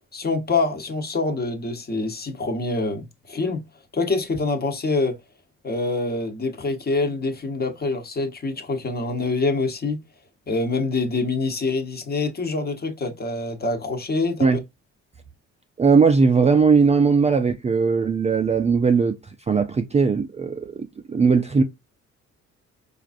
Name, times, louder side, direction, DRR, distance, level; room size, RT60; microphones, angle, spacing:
voice 1, 0.1-3.6 3.9-5.1 5.6-10.0 10.5-14.6, left 3 dB, 30° left, 1.0 m, -25 dB
voice 2, 15.8-19.2 19.5-21.6, right 5 dB, 20° right, 0.4 m, -19 dB
4.5 x 2.5 x 2.4 m
cardioid pair, 90°, 30 cm